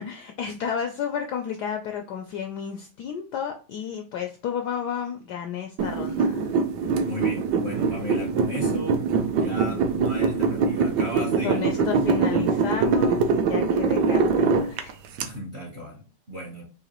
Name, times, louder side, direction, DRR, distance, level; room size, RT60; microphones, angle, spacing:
voice 1, 0.0-6.5 11.4-15.0, left 7 dB, 75° left, 4 dB, 0.9 m, -32 dB
sound 1, 5.8-15.2, right 5 dB, 70° right, 1.0 m, -23 dB
voice 2, 7.0-11.6 11.9-12.0 15.2-16.6, left 1 dB, 50° right, -1 dB, 0.8 m, -36 dB
4.8 x 2.6 x 2.9 m, 0.35 s
omnidirectional pair, 2.2 m